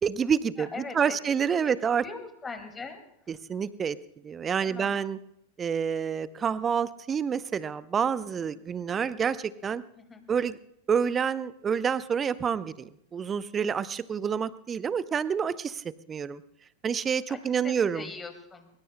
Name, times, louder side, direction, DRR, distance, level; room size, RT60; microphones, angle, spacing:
voice 1, 0.0-2.0 3.3-4.0 4.2-5.2 5.6-9.8 10.3-10.6 10.9-16.4 16.8-18.1, right 7 dB, 20° right, 17 dB, 0.7 m, -28 dB
voice 2, 0.7-1.2 1.6-1.7 2.0-3.0 4.6-5.0 10.0-10.3 17.3-18.7, left 4 dB, 15° left, 6 dB, 2.2 m, -41 dB
23.0 x 22.0 x 2.2 m, 0.72 s
figure-of-eight pair, 90°, 0 cm